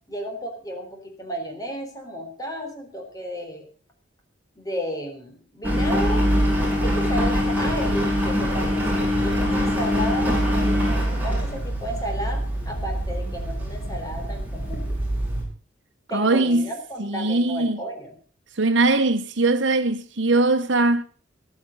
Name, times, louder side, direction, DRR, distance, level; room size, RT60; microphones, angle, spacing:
voice 1, 0.1-3.7 4.6-6.3 6.8-14.9 16.1-18.1, equal, 20° left, 4.1 m, -33 dB
Engine, 5.6-15.4, equal, 10° right, 5.5 m, -23 dB
voice 2, 16.1-16.7 17.0-17.8 18.6-21.0, right 2 dB, 70° right, 1.0 m, -21 dB
14.5 x 12.5 x 5.4 m
head